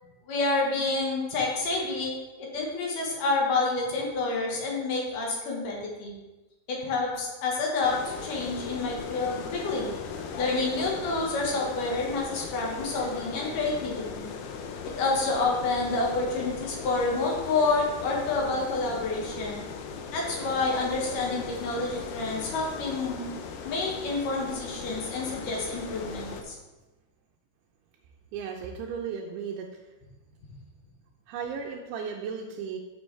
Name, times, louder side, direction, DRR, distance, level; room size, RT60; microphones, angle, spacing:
voice 1, 0.3-6.1 6.7-9.9 10.4-14.3 15.0-19.6 20.1-23.3 23.6-26.6, left 3 dB, 65° left, -2 dB, 2.5 m, -28 dB
sound 1, 7.8-26.4, left 5 dB, 85° left, 2.7 m, -38 dB
voice 2, 28.3-29.7 31.3-32.8, right 6 dB, 85° right, 1 dB, 2.6 m, -35 dB
7.1 x 6.8 x 3.2 m, 1.1 s
omnidirectional pair, 4.7 m